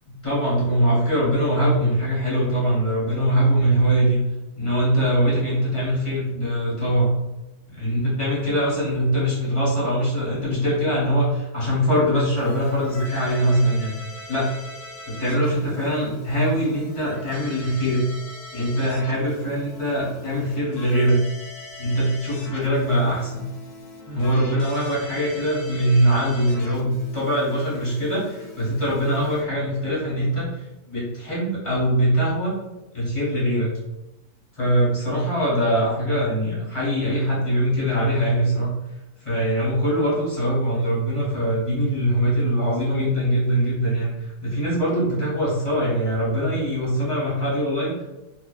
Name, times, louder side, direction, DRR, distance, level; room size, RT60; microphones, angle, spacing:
voice 1, 0.2-4.2 4.5-7.1 7.7-13.9 14.3-14.5 15.1-18.0 18.5-21.2 21.8-23.4 24.1-30.5 30.9-32.6 32.9-33.8 34.6-38.7 39.2-44.1 44.4-48.0, equal, 25° left, -8 dB, 0.7 m, -22 dB
Keyboard (musical), 12.4-29.4, left 2 dB, 70° left, 0.9 m, -42 dB
2.6 x 2.2 x 2.3 m, 0.98 s
omnidirectional pair, 1.6 m